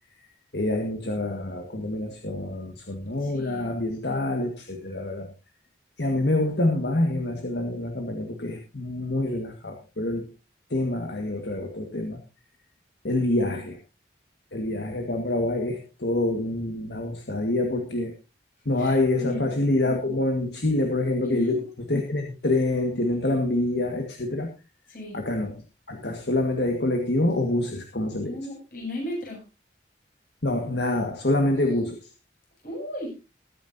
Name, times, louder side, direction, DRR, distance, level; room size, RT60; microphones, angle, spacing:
voice 1, 0.5-5.3 6.0-10.3 10.7-12.2 13.0-13.8 14.5-18.1 18.6-21.6 21.9-24.5 25.1-25.5 25.9-28.3 30.4-32.1, left 2 dB, 65° left, 4 dB, 1.7 m, -26 dB
voice 2, 3.2-3.7 18.8-19.5 21.2-21.6 24.9-25.2 28.2-29.4 31.7-31.8 32.6-33.1, left 1 dB, 50° left, -2 dB, 7.5 m, -35 dB
21.0 x 9.6 x 2.7 m, 0.29 s
head